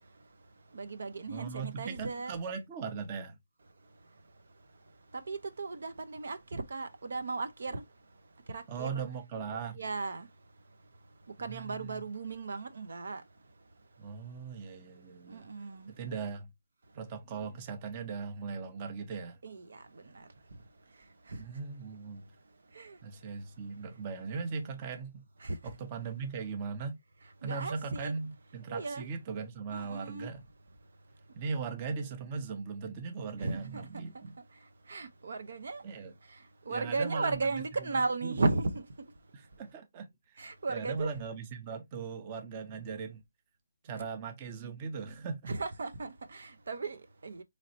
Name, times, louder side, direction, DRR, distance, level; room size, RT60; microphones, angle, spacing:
voice 1, 0.7-2.3 5.1-7.8 8.5-9.0 9.7-10.3 11.4-13.2 15.3-15.9 19.4-19.8 20.1-20.2 21.3-21.4 22.7-23.0 24.3-24.4 25.4-25.6 27.4-28.1 28.7-29.1 29.7-30.3 33.4-34.0 34.9-35.8 36.7-38.9 40.4-41.1 45.5-47.4, right 3 dB, 65° right, 0.7 m, -35 dB
voice 2, 1.3-3.4 8.7-9.8 11.5-12.0 14.0-15.5 15.9-16.5 16.9-19.4 21.4-22.3 23.0-25.2 25.6-27.0 27.4-30.4 31.4-34.3 35.8-36.1 36.7-37.6 37.9-38.4 39.3-40.1 40.3-43.2 43.8-45.5, right 5 dB, 25° right, 0.7 m, -39 dB
4.0 x 3.2 x 2.7 m
hypercardioid pair, 165°, 0 cm